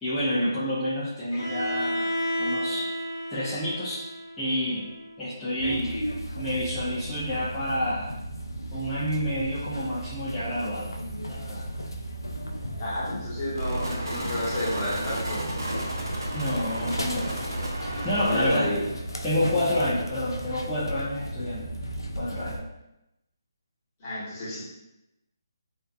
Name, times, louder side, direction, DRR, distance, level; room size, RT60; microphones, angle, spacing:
voice 1, 0.0-2.9 3.3-4.0 4.4-4.9 5.2-6.0 6.4-8.1 8.7-11.0 11.3-11.7 16.3-17.3 18.0-18.7 19.2-21.8 22.2-22.7, left 1 dB, 5° left, -14 dB, 0.5 m, -29 dB
Bowed string instrument, 1.3-5.2, equal, 50° left, 1.0 m, -32 dB
sound 1, 5.6-22.6, right 1 dB, 85° left, 0.3 m, -35 dB
voice 2, 12.8-15.4 18.1-18.8 19.9-20.0 24.0-24.7, left 1 dB, 30° left, -9 dB, 1.1 m, -31 dB
sound 2, 13.5-18.5, right 1 dB, 75° right, 0.6 m, -32 dB
2.5 x 2.3 x 2.3 m, 0.90 s
figure-of-eight pair, 150°, 2 cm